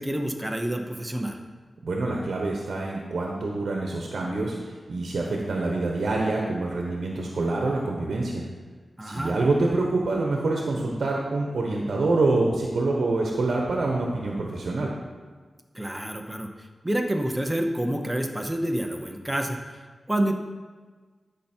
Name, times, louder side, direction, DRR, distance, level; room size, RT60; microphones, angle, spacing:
voice 1, 0.0-1.4 9.0-9.4 15.7-16.5 16.8-19.6 20.1-20.3, right 1 dB, 10° right, 3 dB, 0.8 m, -28 dB
voice 2, 1.8-8.4 9.0-14.9, right 2 dB, 75° right, 0 dB, 1.0 m, -26 dB
12.5 x 5.7 x 4.4 m, 1.4 s
wide cardioid pair, 95°, 0 cm